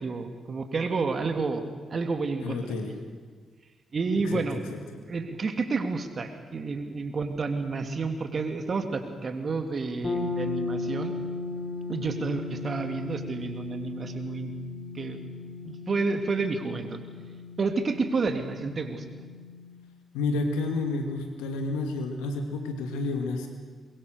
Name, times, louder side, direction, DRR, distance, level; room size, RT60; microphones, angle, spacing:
voice 1, 0.0-1.6 1.9-2.6 3.9-4.6 4.9-11.1 11.9-14.5 14.9-15.2 15.6-17.0 17.6-19.0, right 4 dB, 50° right, 7 dB, 2.9 m, -30 dB
voice 2, 2.4-3.0 4.1-4.4 4.7-4.8 20.1-23.5, left 3 dB, 85° left, 5 dB, 2.5 m, -30 dB
sound 1, 10.0-19.8, left 3 dB, 50° left, 4.4 m, -36 dB
23.0 x 22.5 x 6.7 m, 1.5 s
hypercardioid pair, 40°, 0 cm